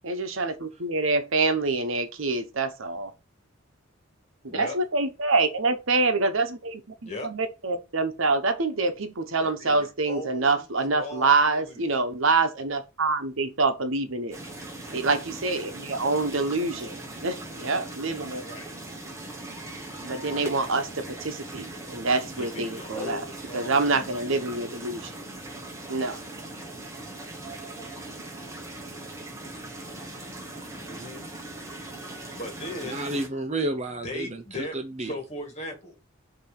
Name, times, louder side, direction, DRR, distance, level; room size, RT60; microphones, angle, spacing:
voice 1, 0.0-3.1 4.4-14.4 14.9-18.4 20.0-23.2 23.5-25.1 25.9-26.2, right 3 dB, 70° right, 1.0 m, -26 dB
voice 2, 9.4-10.6 10.9-11.8 18.4-18.7 20.2-20.5 22.4-24.1 30.7-31.3 32.3-33.0 34.0-36.0, left 2 dB, 30° left, 1.8 m, -38 dB
sound 1, 14.3-33.3, right 2 dB, 15° right, 1.2 m, -40 dB
voice 3, 32.8-35.1, right 1 dB, 30° right, 0.8 m, -31 dB
6.8 x 3.0 x 5.9 m
head